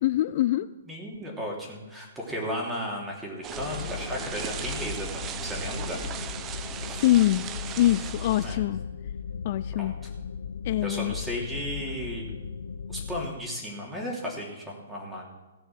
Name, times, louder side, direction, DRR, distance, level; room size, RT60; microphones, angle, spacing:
voice 1, 0.0-0.7 7.0-7.5 7.8-8.8 9.4-9.9 10.7-11.1, left 14 dB, 45° left, 14 dB, 0.4 m, -23 dB
voice 2, 0.9-6.0 8.4-8.6 9.8-9.9 10.8-12.2 12.9-15.3, equal, 10° right, -2 dB, 3.4 m, -35 dB
sound 1, 3.4-8.6, right 9 dB, 25° right, 0.7 m, -37 dB
sound 2, 3.6-13.3, left 6 dB, 75° left, 0.7 m, -37 dB
17.0 x 6.7 x 6.2 m, 1.2 s
hypercardioid pair, 130°, 0 cm